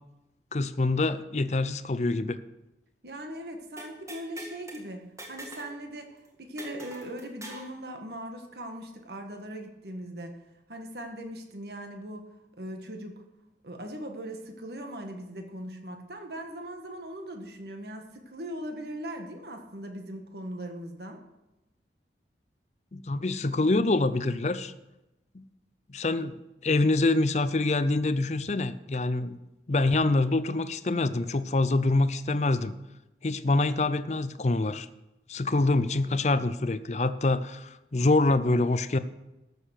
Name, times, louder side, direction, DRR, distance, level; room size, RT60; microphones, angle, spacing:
voice 1, 0.5-2.4 22.9-24.7 25.3-25.5 25.9-29.4 29.7-32.8 33.2-34.9 35.3-39.0, left 2 dB, 40° left, 13 dB, 0.5 m, -25 dB
voice 2, 3.0-10.3 10.7-12.3 12.6-13.2 13.6-21.2, right 1 dB, 65° right, 4 dB, 1.6 m, -40 dB
sound 1, 3.8-4.8 5.2-5.8 6.0-6.1 6.6-7.7, right 1 dB, 15° right, 1.8 m, -43 dB
13.0 x 6.7 x 6.5 m, 0.97 s
head